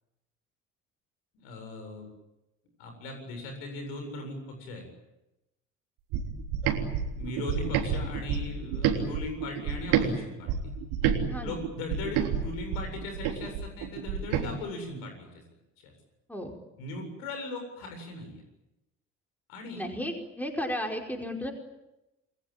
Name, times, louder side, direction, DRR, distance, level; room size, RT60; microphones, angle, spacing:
voice 1, 1.3-2.1 2.8-4.8 7.1-10.5 11.4-15.4 15.8-15.9 16.8-18.4 19.5-19.9, left 2 dB, 65° left, 5 dB, 7.8 m, -38 dB
sound 1, 6.1-10.1 10.5-14.5, right 8 dB, 65° right, 3.5 m, -29 dB
voice 2, 11.3-11.6 16.3-16.5 19.8-21.5, equal, 5° left, 2 dB, 5.0 m, -34 dB
28.5 x 20.5 x 9.1 m, 0.94 s
figure-of-eight pair, 55°, 36 cm